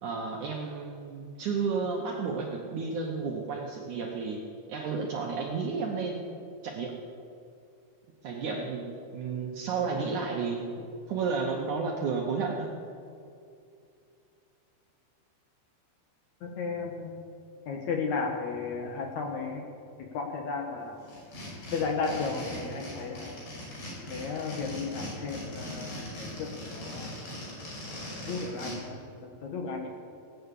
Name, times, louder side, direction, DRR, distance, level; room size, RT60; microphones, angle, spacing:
voice 1, 0.0-4.4 4.7-6.3 6.6-7.0 8.2-12.7, right 4 dB, 75° right, 0 dB, 1.8 m, -32 dB
voice 2, 16.4-17.2 17.6-19.7 20.0-21.0 21.7-23.4 24.1-27.1 28.2-29.9, left 4 dB, 85° left, 1 dB, 1.6 m, -34 dB
sound 1, 21.1-28.7, left 1 dB, 60° left, 6.9 m, -40 dB
18.0 x 7.9 x 8.4 m, 2.5 s
omnidirectional pair, 5.1 m